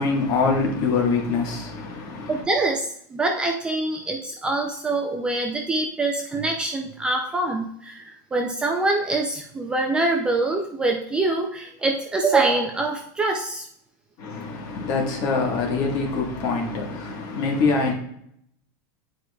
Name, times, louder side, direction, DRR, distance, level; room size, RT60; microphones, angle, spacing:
voice 1, 0.0-2.4 14.2-17.9, left 4 dB, 40° left, 1.3 m, -24 dB
voice 2, 2.3-13.7, right 2 dB, 10° right, 0.3 m, -24 dB
9.7 x 4.6 x 2.3 m
supercardioid pair, 175°, 10 cm